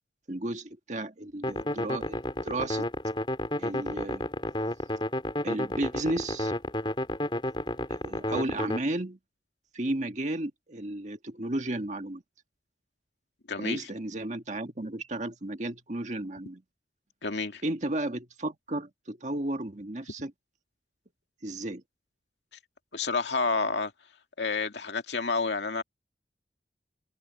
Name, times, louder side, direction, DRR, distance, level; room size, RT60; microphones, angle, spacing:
voice 1, 0.3-2.9 3.6-4.3 5.4-6.5 7.9-9.2 9.7-12.2 13.6-16.6 17.6-20.3 21.4-21.8, right 1 dB, 40° right, 1.8 m, -33 dB
sound 1, 1.4-8.8, left 1 dB, 30° left, 4.3 m, -31 dB
voice 2, 13.5-13.9 17.2-17.6 22.9-23.9 24.4-25.8, left 4 dB, 85° left, 2.2 m, -29 dB
open air
head